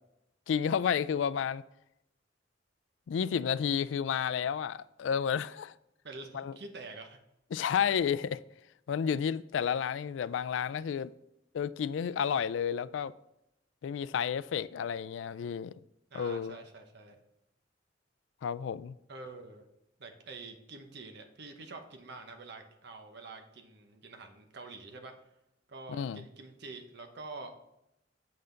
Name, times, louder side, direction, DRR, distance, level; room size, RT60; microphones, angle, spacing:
voice 1, 0.5-1.6 3.1-5.7 6.3-6.6 7.5-8.4 8.9-11.1 11.5-13.1 13.8-15.7 16.1-16.6 18.4-19.0 25.9-26.2, left 7 dB, 80° left, 0.3 m, -31 dB
voice 2, 6.0-7.2 16.1-17.2 19.1-19.6 20.0-25.1 25.7-27.5, right 3 dB, 65° right, 0.9 m, -47 dB
7.8 x 5.7 x 3.8 m
head